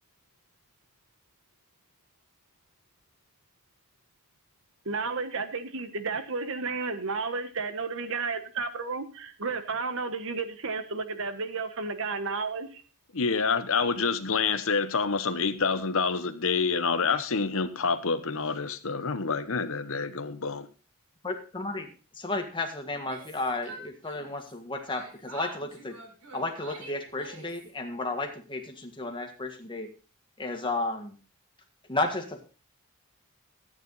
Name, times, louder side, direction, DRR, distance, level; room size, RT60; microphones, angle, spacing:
voice 1, 4.8-12.8, right 4 dB, 65° right, 1.3 m, -32 dB
voice 2, 13.1-20.7, left 5 dB, 65° left, 1.0 m, -27 dB
voice 3, 21.2-26.0 26.3-29.9 30.4-31.2 31.9-32.4, left 2 dB, 25° left, 1.7 m, -33 dB
Yell, 22.9-24.5 24.9-27.7, right 3 dB, 85° right, 4.0 m, -46 dB
13.5 x 9.1 x 4.0 m
head